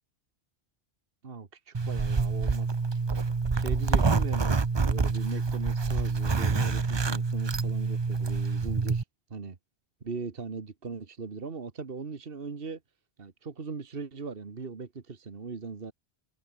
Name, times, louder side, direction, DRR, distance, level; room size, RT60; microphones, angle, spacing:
voice 1, 1.2-2.7 3.5-9.0 9.3-9.6 10.0-12.8 13.2-15.9, right 4 dB, 60° right, 1.8 m, -39 dB
Zipper (clothing), 1.7-9.0, right 4 dB, 30° right, 0.7 m, -27 dB
omnidirectional pair, 1.1 m